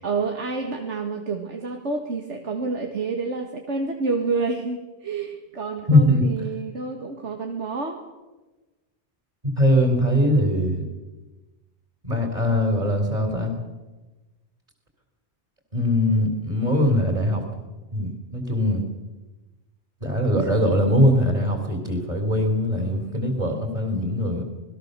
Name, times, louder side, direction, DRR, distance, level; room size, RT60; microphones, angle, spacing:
voice 1, 0.0-8.0 20.3-20.6, right 4 dB, 85° right, 3 dB, 2.1 m, -28 dB
voice 2, 5.9-6.3 9.6-10.9 12.0-13.6 15.7-17.4 17.9-18.8 20.0-24.4, left 1 dB, 35° right, 3 dB, 3.8 m, -21 dB
28.0 x 20.0 x 6.8 m, 1.2 s
omnidirectional pair, 1.2 m